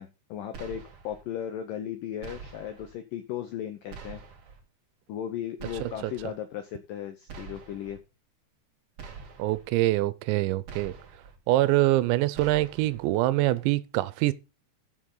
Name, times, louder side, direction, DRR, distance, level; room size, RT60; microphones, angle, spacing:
voice 1, 0.0-4.2 5.1-8.0, left 10 dB, 80° left, 1.9 m, -36 dB
sound 1, 0.5-1.2 2.2-2.9 3.9-4.6 5.6-6.3 7.3-8.0 9.0-9.7 10.7-11.4 12.3-13.0, right 5 dB, 45° right, 1.9 m, -45 dB
voice 2, 9.4-11.0 11.5-14.3, right 17 dB, 90° right, 3.0 m, -24 dB
14.5 x 6.9 x 3.9 m
omnidirectional pair, 5.1 m